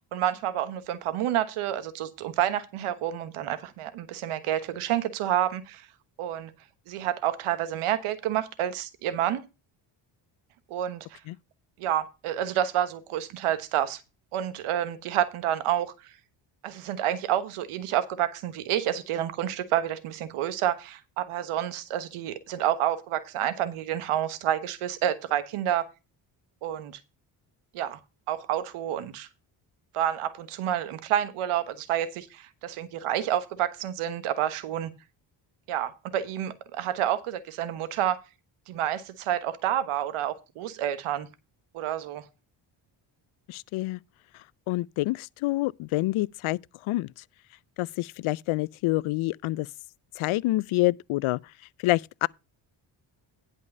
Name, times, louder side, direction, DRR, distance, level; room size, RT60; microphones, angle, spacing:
voice 1, 0.1-5.9 6.2-6.5 6.9-9.4 10.7-11.2 11.8-14.0 14.3-15.9 16.6-25.9 26.6-27.0 27.7-28.0 28.3-29.3 29.9-34.9 35.7-38.2 38.7-41.3 41.7-42.2, right 11 dB, 85° right, 1.3 m, -29 dB
voice 2, 43.5-44.0 44.7-46.6 46.9-47.1 47.8-49.7 50.2-51.4 51.8-52.3, left 19 dB, 75° left, 0.5 m, -27 dB
11.0 x 5.3 x 5.3 m
cardioid pair, 70°, 49 cm